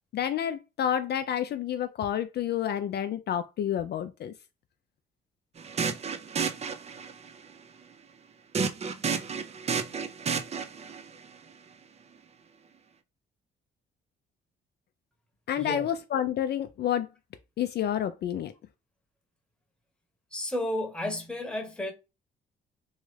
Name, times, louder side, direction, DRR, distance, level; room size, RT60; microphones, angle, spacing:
voice 1, 0.1-4.3 15.5-17.1 17.6-18.5, left 10 dB, 55° left, 0.4 m, -29 dB
sound 1, 5.6-7.3 8.5-11.0, right 6 dB, 35° right, 0.4 m, -31 dB
voice 2, 15.6-15.9 20.3-21.9, left 1 dB, 5° left, 1.0 m, -32 dB
3.1 x 2.4 x 3.2 m
cardioid pair, 90°, 20 cm